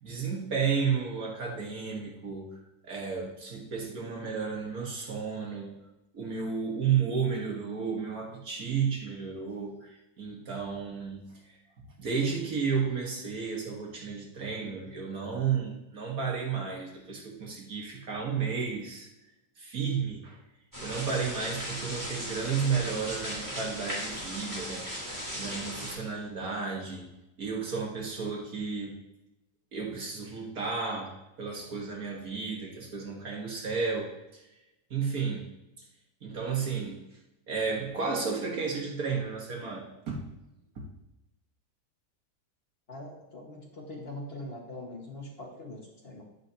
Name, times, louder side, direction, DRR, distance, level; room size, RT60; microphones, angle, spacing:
voice 1, 0.0-5.8 6.1-11.3 11.8-19.1 19.6-20.4 20.8-24.9 25.4-27.1 27.4-29.0 29.7-34.4 34.9-35.5 36.2-37.0 37.5-40.2 40.8-40.9, right 6 dB, 55° right, -1 dB, 2.0 m, -32 dB
sound 1, 20.7-25.9, equal, 10° right, 3.2 m, -37 dB
voice 2, 42.9-46.2, left 1 dB, 35° left, -1 dB, 1.7 m, -42 dB
10.5 x 10.0 x 2.8 m, 0.94 s
omnidirectional pair, 1.8 m